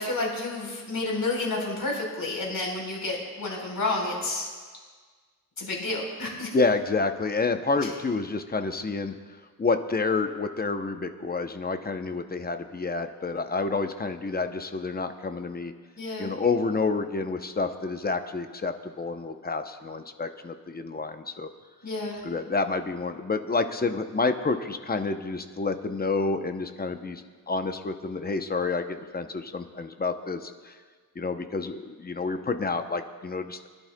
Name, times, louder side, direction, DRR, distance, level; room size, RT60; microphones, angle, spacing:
voice 1, 0.0-4.5 5.6-6.5 16.0-16.3 21.8-22.2, left 2 dB, 60° left, -2 dB, 3.9 m, -30 dB
voice 2, 6.5-9.1 9.6-15.7 16.2-21.5 22.2-30.8 31.2-33.7, left 3 dB, 25° left, 7 dB, 0.6 m, -29 dB
24.5 x 11.0 x 2.2 m, 1.5 s
wide cardioid pair, 120°, 37 cm